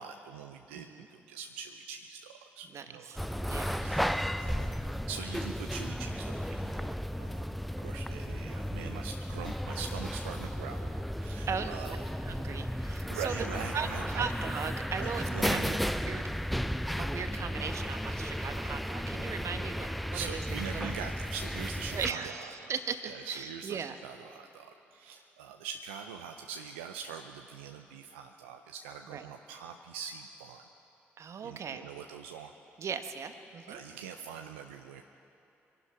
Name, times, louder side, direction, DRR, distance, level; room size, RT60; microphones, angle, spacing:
voice 1, 0.0-3.3 3.8-12.0 13.1-14.3 15.0-15.8 20.1-22.7 23.0-30.6 31.4-32.5 33.7-35.0, right 7 dB, 85° right, 5 dB, 0.5 m, -43 dB
voice 2, 0.7-1.1 2.7-3.8 11.5-12.0 12.2-13.3 13.7-16.3 17.0-20.4 20.8-21.1 21.9-24.0 29.1-29.3 31.2-31.9 32.8-33.8, right 6 dB, 55° right, 8 dB, 1.0 m, -38 dB
sound 1, 3.2-22.1, equal, ahead, 0.5 m, -34 dB
23.5 x 12.0 x 4.9 m, 2.8 s
hypercardioid pair, 40°, 6 cm